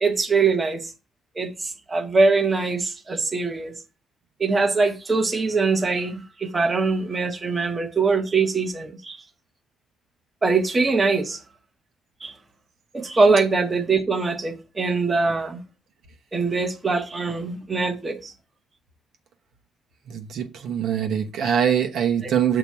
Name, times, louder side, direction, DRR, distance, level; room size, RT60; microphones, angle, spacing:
voice 1, 0.0-0.8 1.4-3.7 4.4-9.2 10.4-11.4 12.2-12.3 12.9-15.6 16.3-18.3 22.2-22.3, right 4 dB, 25° right, 1.1 m, -22 dB
voice 2, 20.1-22.6, right 9 dB, 75° right, 1.0 m, -23 dB
6.9 x 3.0 x 5.8 m
cardioid pair, 90°, 0 cm